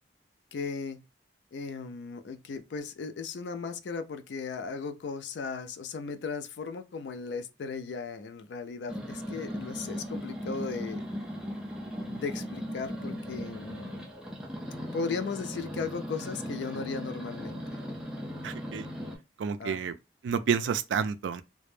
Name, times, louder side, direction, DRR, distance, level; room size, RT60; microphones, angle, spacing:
voice 1, 0.5-1.0 1.5-11.0 12.0-14.1 14.9-17.6 19.6-19.9, left 5 dB, 75° left, 0.4 m, -36 dB
sound 1, 8.9-19.2, equal, 5° right, 0.4 m, -38 dB
voice 2, 18.4-18.9 19.4-19.9 20.2-21.4, right 6 dB, 85° right, 0.3 m, -29 dB
2.1 x 2.0 x 3.0 m
head